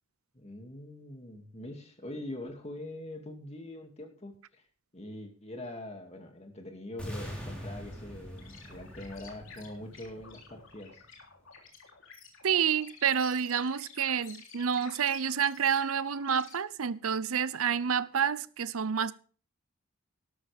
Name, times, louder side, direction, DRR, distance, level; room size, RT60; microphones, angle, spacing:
voice 1, 0.3-4.6 4.9-11.0, left 1 dB, 30° left, 2.4 m, -43 dB
sound 1, 7.0-11.0, equal, 5° left, 4.3 m, -43 dB
sound 2, 8.4-16.5, left 5 dB, 65° left, 3.4 m, -52 dB
voice 2, 12.4-19.1, right 7 dB, 80° right, 0.6 m, -29 dB
13.0 x 12.5 x 3.5 m
head